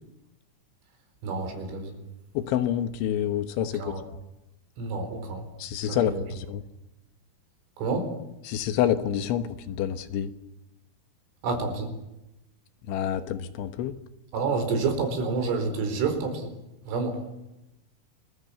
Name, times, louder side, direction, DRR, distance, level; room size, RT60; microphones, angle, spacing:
voice 1, 1.2-2.0 3.8-4.0 4.8-5.4 5.9-6.2 7.8-8.1 11.4-11.9 14.3-16.5 16.9-17.2, right 4 dB, 75° right, 6 dB, 6.9 m, -28 dB
voice 2, 2.4-3.9 5.6-6.6 8.5-10.3 12.9-14.0, left 10 dB, 75° left, 9 dB, 3.5 m, -28 dB
29.0 x 21.5 x 8.4 m, 0.94 s
omnidirectional pair, 5.7 m